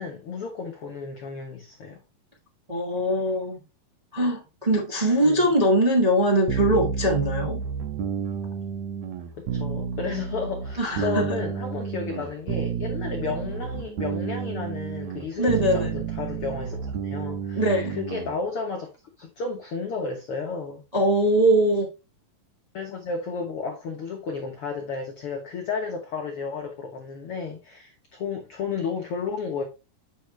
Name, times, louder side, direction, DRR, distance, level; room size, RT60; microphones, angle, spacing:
voice 1, 0.0-2.0 5.2-5.5 9.3-16.8 17.0-18.9 19.2-20.8 22.7-29.6, left 5 dB, 70° left, 1.3 m, -32 dB
voice 2, 2.7-3.6 4.1-7.6 10.8-11.3 15.4-15.9 17.5-18.0 20.9-21.9, right 1 dB, 15° right, 1.2 m, -22 dB
sound 1, 6.5-18.3, right 7 dB, 60° right, 2.0 m, -31 dB
8.0 x 6.2 x 3.3 m
omnidirectional pair, 4.2 m